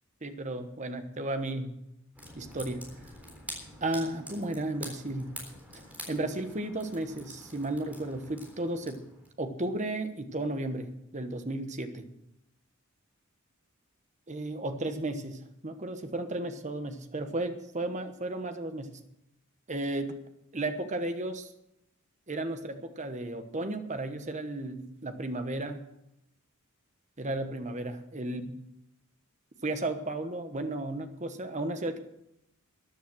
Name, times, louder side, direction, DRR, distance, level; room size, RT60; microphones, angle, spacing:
voice 1, 0.2-1.7 2.3-2.8 3.8-5.3 6.1-9.0 9.4-12.1 14.3-18.9 19.7-20.2 20.5-21.5 22.3-25.8 27.2-28.6 29.6-32.0, right 2 dB, 35° right, 7 dB, 1.2 m, -34 dB
sound 1, 2.1-9.3, equal, 10° right, 3.7 m, -46 dB
14.0 x 10.5 x 6.2 m, 0.82 s
head